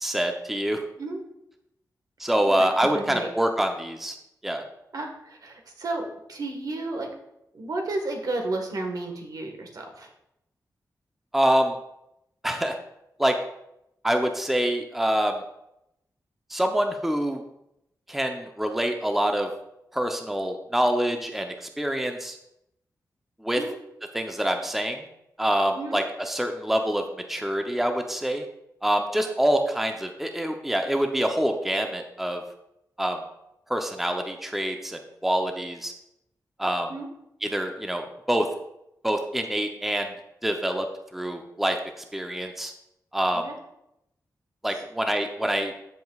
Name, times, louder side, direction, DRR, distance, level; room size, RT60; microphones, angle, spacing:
voice 1, 0.0-0.8 2.2-4.2 4.4-4.6 11.3-11.7 12.4-12.8 13.2-13.4 14.0-15.4 16.5-17.4 18.1-19.5 19.9-22.4 23.4-23.6 24.1-25.0 25.4-28.4 28.8-32.4 33.0-33.2 33.7-35.9 36.6-36.9 37.4-38.5 39.0-40.1 40.4-40.9 41.1-41.8 42.1-42.7 43.1-43.4 44.6-45.7, right 1 dB, 5° right, 4 dB, 0.7 m, -26 dB
voice 2, 2.4-3.3 4.9-7.1 7.5-10.1 23.5-23.7 25.7-25.9 36.9-37.1 43.3-43.5 44.7-44.8, right 2 dB, 65° right, 2 dB, 1.5 m, -33 dB
14.0 x 5.3 x 2.4 m, 0.82 s
wide cardioid pair, 95°, 7 cm